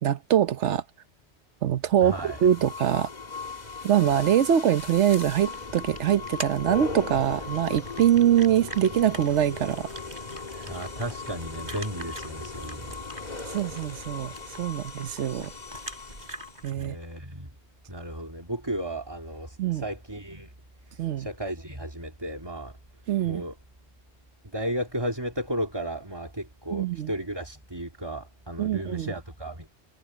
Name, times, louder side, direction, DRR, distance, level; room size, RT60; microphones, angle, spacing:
voice 1, 0.0-0.8 1.6-3.1 3.8-9.9 13.5-15.5 16.6-17.0 19.6-19.8 21.0-21.3 23.1-23.4 26.7-27.1 28.6-29.1, right 10 dB, 85° right, 1.1 m, -23 dB
sound 1, 2.0-16.7, left 4 dB, 40° left, 1.6 m, -38 dB
voice 2, 2.0-2.4 10.7-13.0 16.8-17.5 17.9-20.5 20.9-22.8 23.2-23.5 24.4-29.7, right 1 dB, 20° right, 2.6 m, -34 dB
sound 2, 4.7-16.9, right 1 dB, 40° right, 5.6 m, -44 dB
omnidirectional pair, 1.2 m